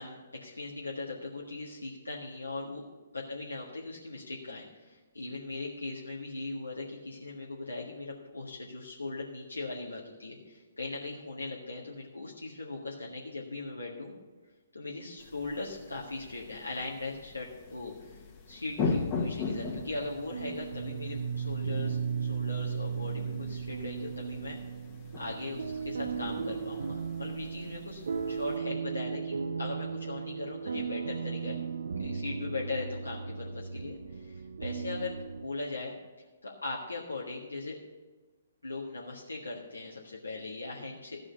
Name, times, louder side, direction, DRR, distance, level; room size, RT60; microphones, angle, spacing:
voice 1, 0.0-2.8 3.1-14.1 14.7-24.6 25.2-31.6 32.0-36.0 36.4-37.8 38.6-41.2, left 2 dB, 85° left, -3 dB, 1.6 m, -39 dB
sound 1, 15.2-28.6, left 4 dB, 30° left, 1.5 m, -40 dB
sound 2, 19.5-35.4, right 6 dB, 65° right, 0.6 m, -36 dB
13.5 x 5.0 x 8.2 m, 1.3 s
figure-of-eight pair, 130°, 0 cm